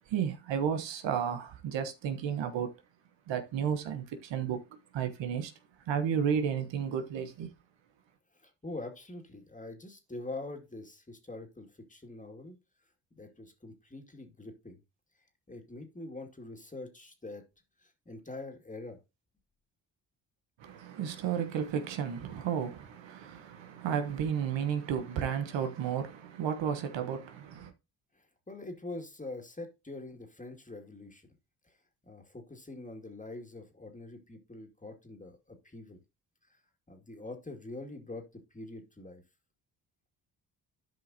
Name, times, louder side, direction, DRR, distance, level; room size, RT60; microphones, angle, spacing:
voice 1, 0.1-2.7 3.3-4.6 4.9-5.5 5.9-7.5 20.6-27.7, right 8 dB, 75° right, 1.2 m, -32 dB
voice 2, 8.4-12.5 13.1-14.8 15.5-17.4 17.8-19.0 28.5-31.2 32.0-36.0 36.9-39.2, left 2 dB, 15° left, 2.3 m, -44 dB
12.5 x 5.2 x 2.8 m
supercardioid pair, 55°, 45 cm